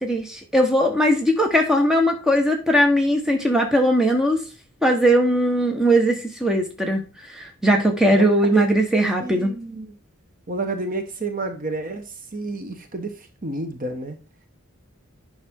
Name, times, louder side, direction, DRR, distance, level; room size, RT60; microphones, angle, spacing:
voice 1, 0.0-4.4 4.8-9.6, equal, 5° right, 2 dB, 1.3 m, -19 dB
voice 2, 8.1-9.9 10.5-14.2, right 3 dB, 40° right, 6 dB, 1.1 m, -30 dB
9.7 x 5.8 x 3.7 m, 0.32 s
head